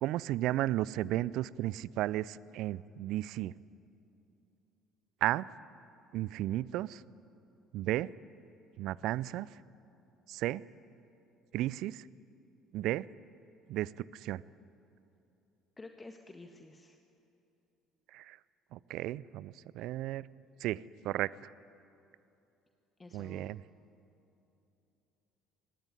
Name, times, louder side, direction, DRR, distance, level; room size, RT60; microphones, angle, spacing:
voice 1, 0.0-3.5 5.2-5.5 6.1-7.0 7.7-8.1 8.8-9.6 10.3-10.6 11.5-12.1 12.7-13.1 13.7-14.4 18.1-18.4 18.7-20.3 20.6-21.5 23.1-23.6, right 15 dB, 60° right, 22 dB, 0.5 m, -34 dB
voice 2, 15.8-17.0 23.0-23.5, left 2 dB, 20° left, 5 dB, 1.6 m, -50 dB
24.0 x 19.5 x 9.9 m, 2.9 s
figure-of-eight pair, 55°, 0 cm